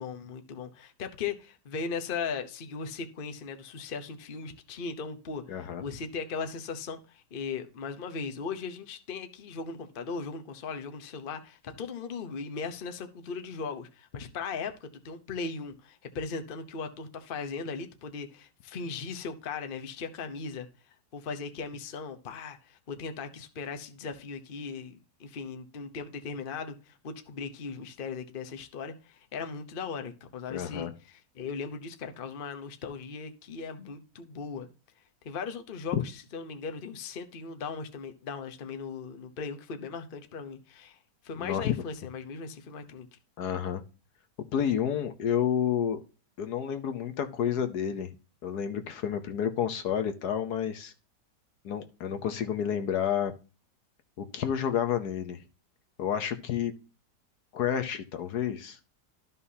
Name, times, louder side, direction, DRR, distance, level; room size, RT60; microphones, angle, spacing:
voice 1, 0.0-20.7 21.1-34.7 35.2-41.0 41.2-43.1, left 5 dB, 40° left, 0.9 m, -38 dB
voice 2, 5.5-5.8 30.5-30.9 35.9-36.0 41.4-41.7 43.4-43.8 44.5-46.0 46.4-48.1 48.4-50.9 51.6-53.3 54.2-55.4 56.0-56.7 57.5-58.8, left 9 dB, 70° left, 1.4 m, -30 dB
13.0 x 5.6 x 2.8 m
omnidirectional pair, 1.8 m